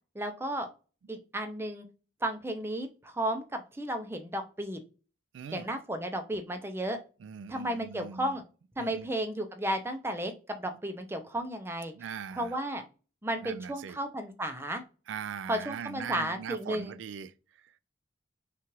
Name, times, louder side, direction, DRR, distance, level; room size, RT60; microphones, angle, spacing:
voice 1, 0.1-0.7 1.1-1.9 2.2-4.8 5.5-7.0 7.5-8.4 8.8-11.9 12.3-12.8 13.2-14.8 15.5-16.9, right 1 dB, 15° right, 0.5 m, -33 dB
voice 2, 5.3-5.7 7.2-8.3 8.8-9.1 12.0-12.6 13.4-14.0 15.1-17.3 17.6-17.7, right 7 dB, 75° right, 0.3 m, -40 dB
5.7 x 2.4 x 3.0 m
head